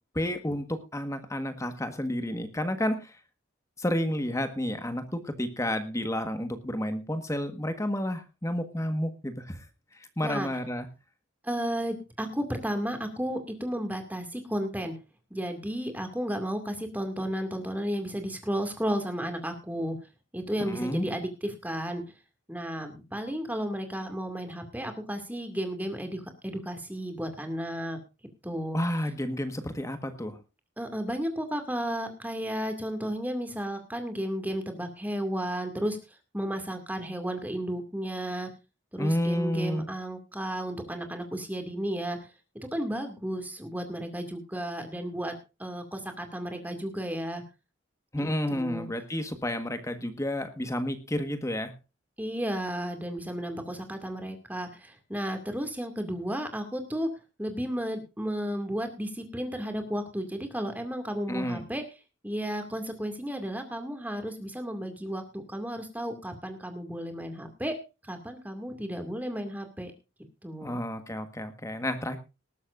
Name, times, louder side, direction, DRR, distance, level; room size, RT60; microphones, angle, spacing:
voice 1, 0.1-3.2 3.8-9.6 9.9-10.9 20.7-21.1 28.7-30.4 39.0-39.9 48.1-51.7 61.3-61.7 70.6-72.2, left 1 dB, 15° left, 8 dB, 1.5 m, -31 dB
voice 2, 11.4-14.9 15.3-20.0 20.3-22.0 22.5-28.0 28.4-28.8 30.8-36.0 36.3-38.5 38.9-42.3 42.7-47.4 48.2-48.9 52.2-57.1 57.4-61.8 62.2-67.7 68.0-69.9 70.4-70.7, equal, 10° right, 6 dB, 2.3 m, -33 dB
19.5 x 12.5 x 2.6 m, 0.29 s
head